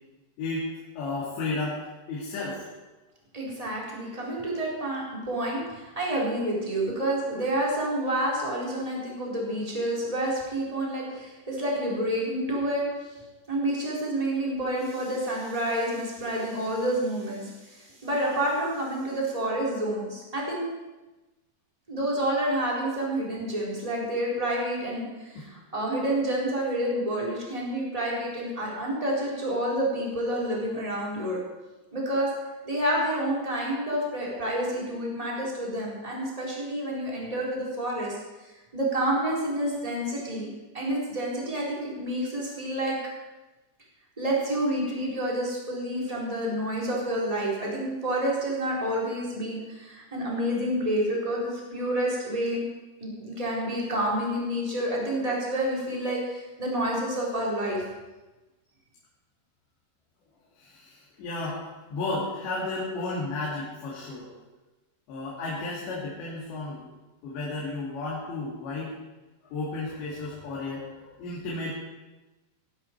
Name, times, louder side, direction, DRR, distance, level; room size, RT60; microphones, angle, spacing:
voice 1, 0.4-1.8 2.1-2.7 25.4-25.5 60.6-61.6 61.9-64.3 65.1-66.9 67.2-68.9 69.5-71.7, left 2 dB, 85° left, -5 dB, 4.7 m, -33 dB
voice 2, 3.3-12.8 13.5-20.7 21.9-31.4 31.9-32.3 32.6-38.1 38.7-40.5 40.7-42.9 44.2-52.6 53.0-57.8, right 1 dB, 10° right, -4 dB, 3.7 m, -29 dB
18.5 x 12.5 x 4.6 m, 1.1 s
omnidirectional pair, 5.0 m